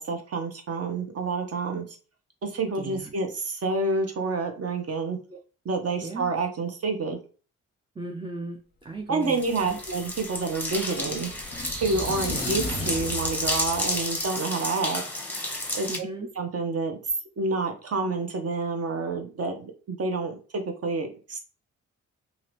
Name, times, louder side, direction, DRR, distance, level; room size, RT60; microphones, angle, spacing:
voice 1, 0.0-2.0 2.4-5.2 5.6-7.2 9.1-11.3 11.8-15.0 15.7-16.1 16.4-17.0 17.4-21.4, right 3 dB, 50° right, 5 dB, 0.9 m, -28 dB
voice 2, 2.8-3.1 5.3-5.4 6.0-6.3 8.0-9.8 12.3-12.5 15.9-16.3, right 2 dB, 15° right, 3 dB, 0.4 m, -37 dB
sound 1, 9.2-14.3, left 4 dB, 30° left, 0.6 m, -38 dB
sound 2, 9.2-16.0, left 1 dB, 5° left, 0.9 m, -31 dB
sound 3, 11.4-14.2, right 5 dB, 80° right, 0.7 m, -41 dB
2.7 x 2.6 x 3.3 m, 0.37 s
supercardioid pair, 55°, 31 cm